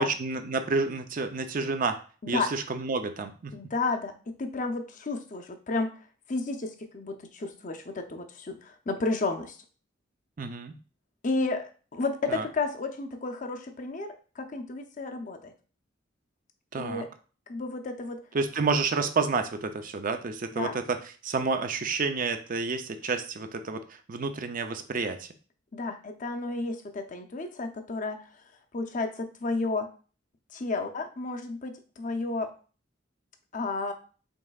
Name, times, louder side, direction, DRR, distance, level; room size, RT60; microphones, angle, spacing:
voice 1, 0.0-2.0 2.3-3.5 10.4-10.7 12.3-12.5 16.7-17.1 18.3-21.0 21.2-25.3, right 4 dB, 45° right, 8 dB, 0.5 m, -29 dB
voice 2, 3.5-5.9 6.3-9.6 11.2-14.1 14.4-15.5 16.8-17.1 17.5-18.2 20.6-20.7 25.7-28.2 28.7-29.9 30.5-32.5 33.5-33.9, left 3 dB, 40° left, 6 dB, 0.6 m, -32 dB
5.3 x 3.7 x 2.3 m, 0.38 s
head